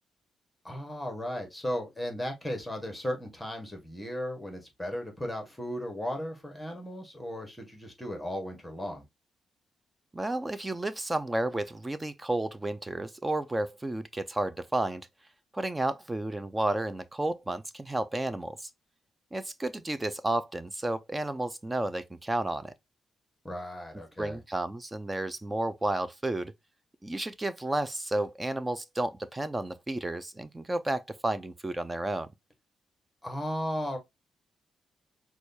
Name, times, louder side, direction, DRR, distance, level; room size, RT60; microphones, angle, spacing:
voice 1, 0.6-9.0 23.4-24.4 33.2-34.0, equal, 10° left, 1.3 m, -35 dB
voice 2, 10.1-15.1 15.5-18.7 19.3-22.7 24.2-26.5 27.0-32.3, right 2 dB, 15° right, 0.4 m, -32 dB
6.1 x 2.3 x 2.7 m
cardioid pair, 110°, 0 cm